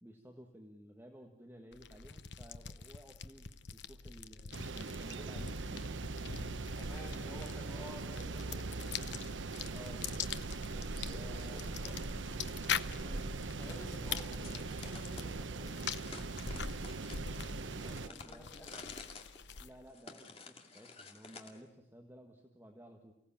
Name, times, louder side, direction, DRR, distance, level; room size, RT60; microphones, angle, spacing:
voice 1, 0.0-5.8 9.7-10.3 11.1-11.7 17.8-18.5 19.6-23.1, equal, 10° right, 2 dB, 1.7 m, -55 dB
sound 1, 1.7-19.9, left 7 dB, 70° left, 0.9 m, -44 dB
sound 2, 4.5-18.1, right 3 dB, 90° right, 0.9 m, -41 dB
voice 2, 6.8-8.9 10.7-12.4 12.8-15.8 17.6-18.8, equal, 10° left, -1 dB, 6.6 m, -52 dB
sound 3, 14.1-15.3 15.8-21.6, left 4 dB, 30° left, 2.4 m, -52 dB
29.5 x 17.5 x 8.8 m, 0.84 s
head